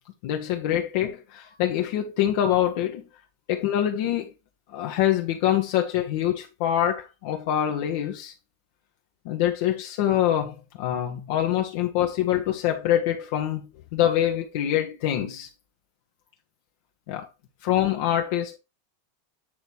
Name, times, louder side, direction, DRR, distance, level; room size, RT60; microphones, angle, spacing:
voice 1, 0.2-3.0 3.5-4.3 4.7-8.3 9.2-15.5 17.1-17.3 17.6-18.6, left 11 dB, 60° left, 1.1 m, -25 dB
8.8 x 3.1 x 4.4 m
hypercardioid pair, 100°, 0 cm